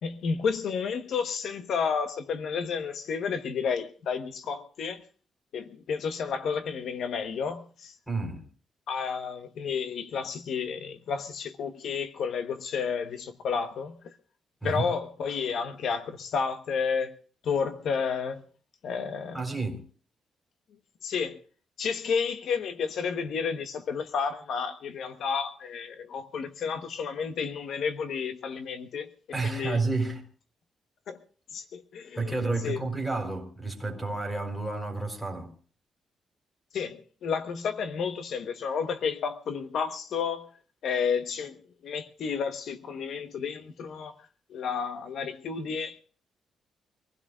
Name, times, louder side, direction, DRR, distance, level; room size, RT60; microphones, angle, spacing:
voice 1, 0.0-5.0 5.5-7.9 8.9-14.1 14.6-17.1 17.4-18.4 18.8-19.4 21.0-21.4 21.8-29.1 29.4-29.8 31.1-31.2 31.5-32.4 32.6-32.8 36.7-40.5 40.8-44.1 44.5-46.0, left 6 dB, 70° left, 1.1 m, -31 dB
voice 2, 8.1-8.5 14.6-14.9 19.3-19.8 29.3-30.2 32.1-35.5, right 3 dB, ahead, 4.1 m, -30 dB
25.0 x 16.0 x 2.4 m
cardioid pair, 150°, 0 cm